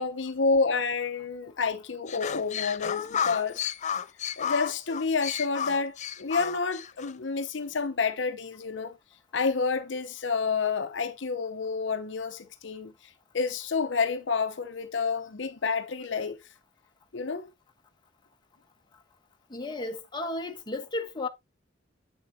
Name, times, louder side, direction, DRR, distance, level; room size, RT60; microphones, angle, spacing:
voice 1, 0.0-3.6 4.4-8.9 9.3-12.9 13.3-16.4 17.1-17.5, left 4 dB, 70° left, 0.7 m, -29 dB
sound 1, 2.1-7.1, left 8 dB, 40° left, 0.5 m, -32 dB
voice 2, 19.5-21.3, left 2 dB, 25° left, 1.1 m, -33 dB
7.9 x 7.0 x 2.7 m
head